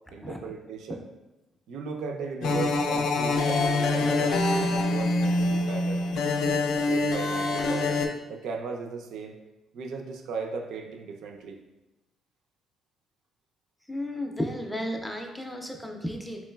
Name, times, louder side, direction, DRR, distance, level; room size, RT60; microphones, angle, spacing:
voice 1, 0.1-1.0 1.7-6.0 6.8-7.9 8.3-9.4 9.7-11.6, right 5 dB, 75° right, 3 dB, 0.4 m, -36 dB
sound 1, 2.4-8.1, left 2 dB, 75° left, 0.4 m, -25 dB
voice 2, 13.9-16.4, left 1 dB, ahead, 2 dB, 0.4 m, -33 dB
3.7 x 3.0 x 2.2 m, 1.0 s
cardioid pair, 130°, 0 cm